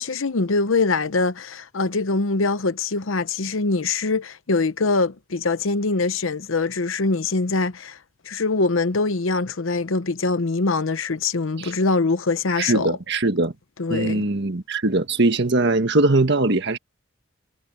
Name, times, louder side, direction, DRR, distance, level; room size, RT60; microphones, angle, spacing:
voice 1, 0.0-8.0 8.2-13.0 13.8-14.3, left 3 dB, 75° left, 0.8 m, -23 dB
voice 2, 12.6-13.5 13.9-16.8, right 2 dB, 60° right, 1.6 m, -21 dB
head